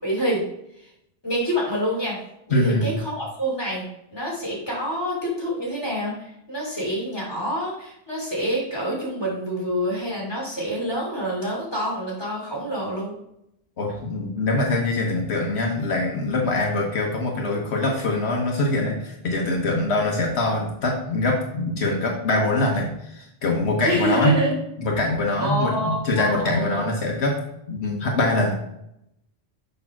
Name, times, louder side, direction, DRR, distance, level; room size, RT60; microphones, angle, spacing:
voice 1, 0.0-0.4 0.8-0.9 1.2-2.2 2.5-13.1 23.8-24.6 25.4-26.9, equal, 25° left, -4 dB, 2.9 m, -27 dB
voice 2, 2.5-2.9 13.8-24.4 24.8-27.4 27.7-28.6, left 2 dB, 80° left, 0 dB, 1.3 m, -23 dB
6.5 x 3.3 x 5.9 m, 0.79 s
omnidirectional pair, 1.1 m